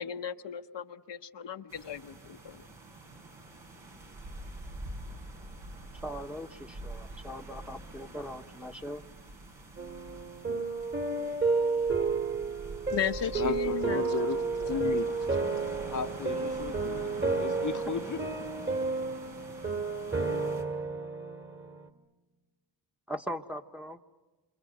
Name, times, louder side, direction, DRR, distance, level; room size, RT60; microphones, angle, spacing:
voice 1, 0.0-2.6 12.9-14.3 14.7-15.0, left 8 dB, 70° left, 1.0 m, -36 dB
sound 1, 1.7-20.6, right 2 dB, 80° right, 5.7 m, -46 dB
voice 2, 6.0-9.0 10.5-10.7 23.1-24.0, equal, 5° right, 1.3 m, -40 dB
sound 2, 9.8-21.9, right 4 dB, 25° right, 2.3 m, -31 dB
voice 3, 13.2-15.1 15.9-18.3, left 6 dB, 40° left, 1.0 m, -35 dB
27.5 x 27.0 x 7.9 m
cardioid pair, 70°, 45 cm